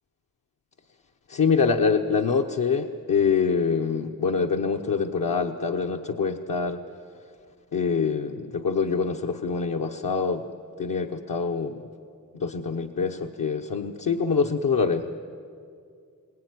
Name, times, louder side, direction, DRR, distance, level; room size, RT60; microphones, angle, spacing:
voice 1, 1.3-6.8 7.7-10.4 10.8-11.8 12.3-15.1, left 5 dB, 65° left, 1 dB, 1.1 m, -25 dB
25.5 x 18.5 x 9.7 m, 2.3 s
wide cardioid pair, 85°, 35 cm